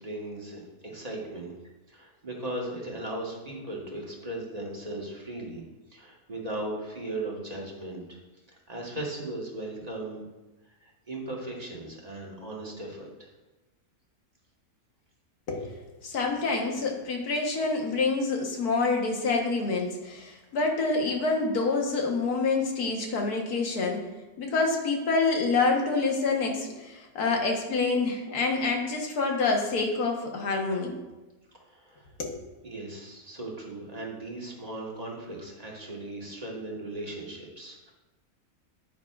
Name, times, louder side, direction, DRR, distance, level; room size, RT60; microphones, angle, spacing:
voice 1, 0.0-1.5 1.9-5.6 5.9-8.2 8.7-10.2 10.8-13.3 31.7-32.1 32.6-37.9, right 1 dB, 25° right, -2 dB, 1.5 m, -37 dB
voice 2, 16.0-24.1 24.4-30.9 32.2-32.4, left 3 dB, 80° left, 1 dB, 1.7 m, -27 dB
9.4 x 9.1 x 2.4 m, 1.1 s
omnidirectional pair, 1.6 m